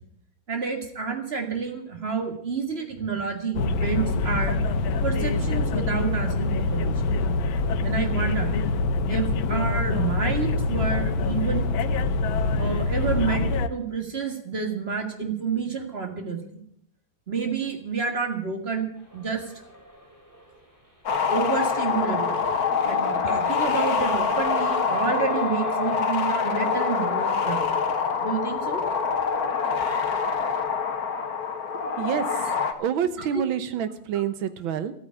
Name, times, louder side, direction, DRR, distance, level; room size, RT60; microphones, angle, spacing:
voice 1, 0.5-4.6 5.0-7.1 7.8-8.6 9.1-11.7 12.6-16.6 17.3-18.9 19.1-19.5 21.3-22.4 22.8-27.8 28.2-28.8 33.2-33.4, right 5 dB, 30° right, 4 dB, 2.1 m, -29 dB
sound 1, 3.6-13.7, left 3 dB, 85° left, 1.6 m, -25 dB
sound 2, 19.0-20.7 21.1-27.2, equal, 10° right, 2.9 m, -39 dB
sound 3, 21.1-32.7, left 6 dB, 55° left, 1.6 m, -25 dB
voice 2, 32.0-32.4 32.8-34.9, right 8 dB, 85° right, 12 dB, 1.8 m, -27 dB
13.5 x 9.2 x 8.7 m, 0.67 s
omnidirectional pair, 2.1 m